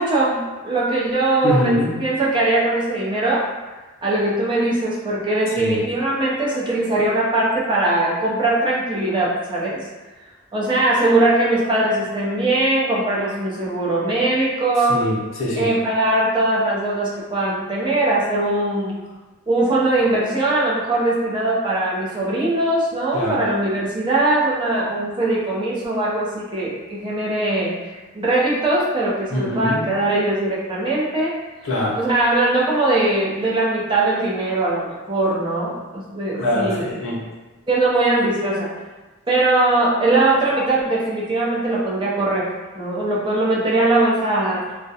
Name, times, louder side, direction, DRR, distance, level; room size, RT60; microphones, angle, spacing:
voice 1, 0.0-3.4 4.0-9.9 10.5-15.0 15.6-18.9 19.5-31.3 32.0-36.9 37.7-38.7 39.3-44.6, right 2 dB, 25° right, -6 dB, 0.5 m, -20 dB
voice 2, 1.4-1.9 5.6-5.8 14.8-15.7 23.1-23.4 29.3-29.8 31.6-32.0 36.4-37.2, left 1 dB, 90° left, -5 dB, 0.7 m, -23 dB
2.3 x 2.1 x 2.7 m, 1.2 s
head